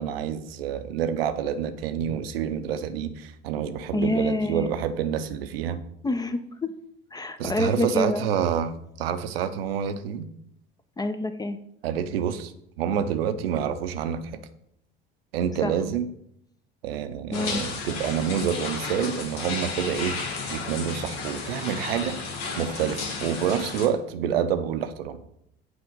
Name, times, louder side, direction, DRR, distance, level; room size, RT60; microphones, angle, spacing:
voice 1, 0.0-5.8 7.4-8.7 9.0-10.3 11.8-12.5 12.8-14.4 15.3-16.0 16.8-20.2 20.5-22.2 22.6-25.2, right 8 dB, 75° right, 10 dB, 0.6 m, -28 dB
voice 2, 3.9-4.7 6.0-6.7 7.1-8.3 11.0-11.6 15.6-15.7 17.3-17.6, left 1 dB, 15° left, 10 dB, 0.4 m, -27 dB
sound 1, 17.3-23.9, left 4 dB, 65° left, 1.2 m, -33 dB
7.8 x 2.8 x 5.1 m, 0.74 s
figure-of-eight pair, 65°, 30 cm